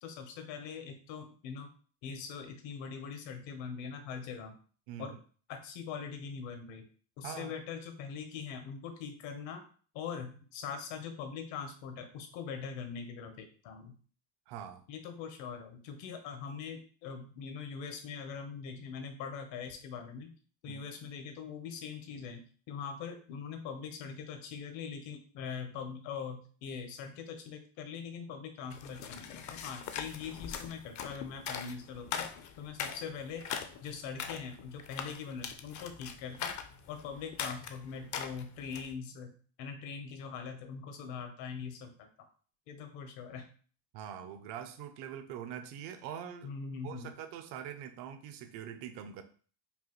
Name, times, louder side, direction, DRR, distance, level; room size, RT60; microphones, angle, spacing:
voice 1, 0.0-1.7 2.0-4.5 5.0-5.1 5.5-6.8 7.2-9.6 9.9-13.9 14.9-20.3 20.6-32.3 32.6-33.4 33.8-36.5 36.9-42.1 42.7-43.5 46.4-47.2, left 6 dB, 70° left, 6 dB, 1.0 m, -42 dB
voice 2, 14.5-14.8 20.7-20.8 43.9-46.5 46.8-49.2, right 9 dB, 60° right, 8 dB, 0.6 m, -43 dB
sound 1, 28.7-38.9, left 7 dB, 40° left, 0.5 m, -41 dB
5.3 x 2.3 x 3.0 m, 0.42 s
cardioid pair, 135°, 47 cm